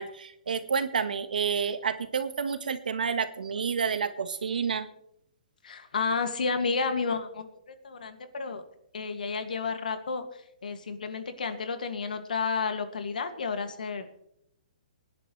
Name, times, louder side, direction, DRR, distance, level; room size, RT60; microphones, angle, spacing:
voice 1, 0.0-4.9, right 6 dB, 85° right, 10 dB, 1.5 m, -29 dB
voice 2, 5.6-8.6 8.9-14.2, left 4 dB, 85° left, 7 dB, 2.2 m, -31 dB
24.5 x 10.5 x 3.3 m, 0.75 s
hypercardioid pair, 145°, 4 cm